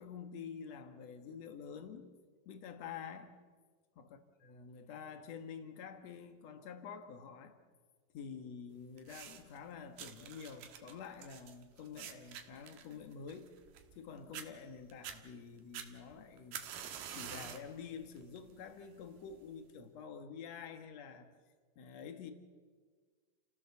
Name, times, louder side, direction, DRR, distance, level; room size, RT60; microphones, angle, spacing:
voice 1, 0.0-2.1 2.5-3.3 4.0-7.6 8.1-13.5 14.0-16.7 17.1-21.3 21.8-22.3, left 6 dB, 55° left, 7 dB, 2.4 m, -48 dB
sound 1, 9.0-9.6 10.0-14.0 14.3-14.5 14.9-15.2 15.7-17.7 18.2-18.5 19.3-19.4, right 9 dB, 75° right, 3.0 m, -47 dB
29.5 x 16.5 x 7.0 m, 1.5 s
omnidirectional pair, 4.1 m